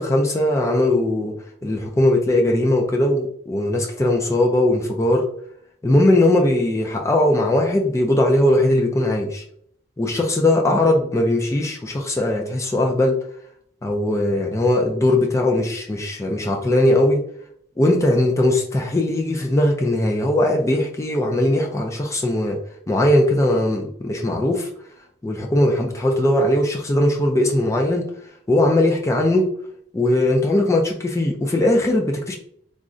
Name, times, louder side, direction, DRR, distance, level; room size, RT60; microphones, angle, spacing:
voice 1, 0.0-1.3 1.6-5.3 5.8-9.4 10.0-13.2 13.8-17.2 17.8-22.6 22.9-24.7 25.2-28.1 28.5-29.5 29.9-32.4, left 1 dB, 15° left, 1 dB, 0.3 m, -19 dB
3.6 x 2.1 x 2.5 m, 0.65 s
head